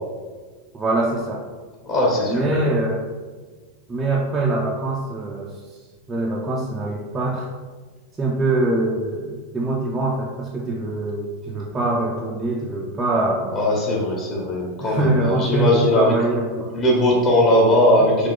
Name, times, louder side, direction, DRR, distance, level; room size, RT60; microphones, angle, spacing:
voice 1, 0.7-1.4 2.3-3.1 3.9-5.6 6.1-7.5 8.2-13.7 14.8-16.8, right 2 dB, 20° right, -3 dB, 0.4 m, -23 dB
voice 2, 1.8-2.6 13.5-16.1 16.7-18.3, left 1 dB, 30° left, -3 dB, 1.2 m, -19 dB
3.7 x 2.4 x 3.8 m, 1.4 s
figure-of-eight pair, 90°, 0 cm